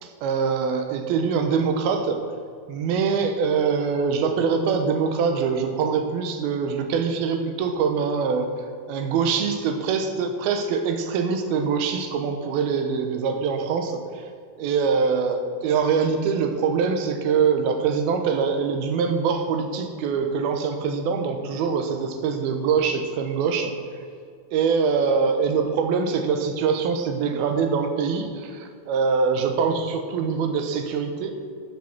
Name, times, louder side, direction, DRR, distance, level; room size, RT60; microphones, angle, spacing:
voice 1, 0.0-2.2 2.7-14.3 14.6-23.7 24.5-31.3, right 5 dB, 80° right, 5 dB, 2.8 m, -24 dB
14.5 x 6.1 x 6.0 m, 2.3 s
omnidirectional pair, 4.4 m